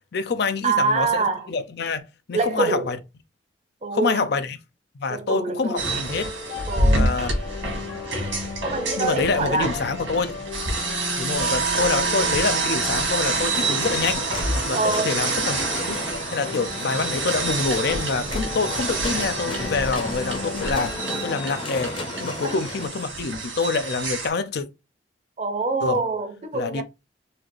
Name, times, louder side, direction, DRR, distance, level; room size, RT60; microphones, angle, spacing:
voice 1, 0.1-3.0 3.9-4.6 5.0-6.3 6.9-7.3 9.0-10.4 11.2-16.0 16.3-21.9 22.2-24.7 25.8-26.0 26.5-26.8, left 4 dB, 60° left, 0.5 m, -26 dB
voice 2, 0.6-1.5 2.3-3.0 3.8-4.4 5.1-5.9 6.7-7.1 8.6-9.8 14.7-15.2 22.4-22.6 25.4-26.8, right 3 dB, 35° right, 0.6 m, -25 dB
sound 1, 5.8-24.3, right 2 dB, 85° right, 1.7 m, -27 dB
sound 2, 6.1-21.9, left 4 dB, 90° left, 0.9 m, -37 dB
sound 3, 13.5-22.9, left 2 dB, 25° left, 0.8 m, -34 dB
4.2 x 2.5 x 3.0 m
head